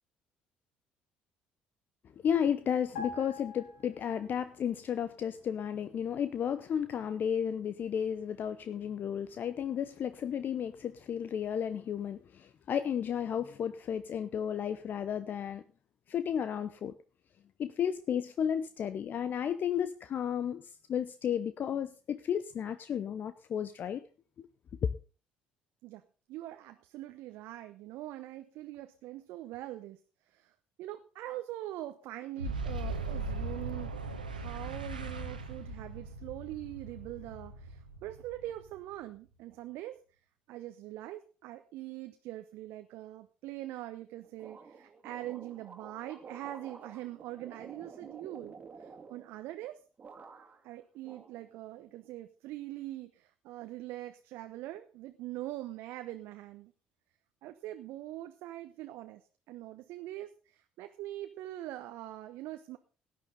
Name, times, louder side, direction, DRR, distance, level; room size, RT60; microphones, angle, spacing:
voice 1, 2.2-15.6 16.1-16.9 17.6-20.6 20.9-24.0 24.4-24.5, left 8 dB, 45° left, 12 dB, 0.8 m, -33 dB
sound 1, 2.9-4.6 4.8-5.1, left 4 dB, 75° left, 5.8 m, -44 dB
voice 2, 26.3-30.0 30.3-40.0 40.5-49.8 50.6-56.7 57.4-59.2 59.5-62.8, right 15 dB, 60° right, 8 dB, 0.9 m, -43 dB
Boom, 32.4-38.9, right 3 dB, 90° right, 1.4 m, -39 dB
sound 2, 44.4-49.7 50.0-50.7 51.0-51.9, right 5 dB, 35° right, 2.2 m, -51 dB
17.0 x 9.7 x 3.9 m, 0.36 s
figure-of-eight pair, 55°, 4 cm